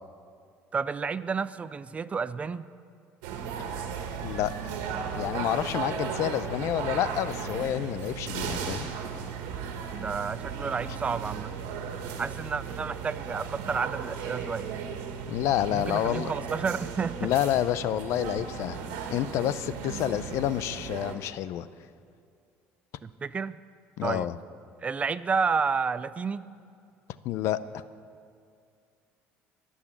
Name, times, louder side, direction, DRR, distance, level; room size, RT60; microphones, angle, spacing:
voice 1, 0.7-2.7 9.9-11.5 12.2-14.7 15.7-17.3 23.0-23.6 24.0-24.3 24.8-26.5, right 5 dB, 25° right, 15 dB, 0.4 m, -30 dB
sound 1, 3.2-21.1, right 6 dB, 85° right, 1.7 m, -36 dB
voice 2, 4.2-4.5 5.1-8.9 15.3-16.3 17.2-18.8 19.1-21.7 24.0-24.3 27.2-27.8, left 12 dB, 65° left, 16 dB, 0.5 m, -29 dB
21.5 x 7.2 x 7.2 m, 2.3 s
supercardioid pair, 105°, 5 cm